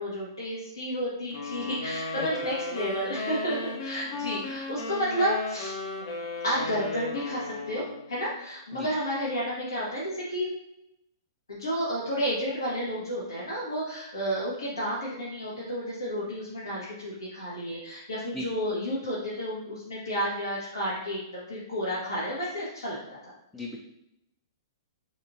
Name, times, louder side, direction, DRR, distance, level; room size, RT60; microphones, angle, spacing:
voice 1, 0.0-5.7 6.4-10.5 11.5-23.3, equal, 75° left, -8 dB, 1.0 m, -31 dB
sound 1, 1.3-8.1, left 3 dB, 50° left, 0.7 m, -35 dB
voice 2, 2.2-2.5 8.7-8.9 18.3-18.5 23.5-23.8, left 1 dB, 10° left, 0 dB, 0.4 m, -37 dB
4.2 x 3.0 x 2.6 m, 0.84 s
figure-of-eight pair, 110°, 2 cm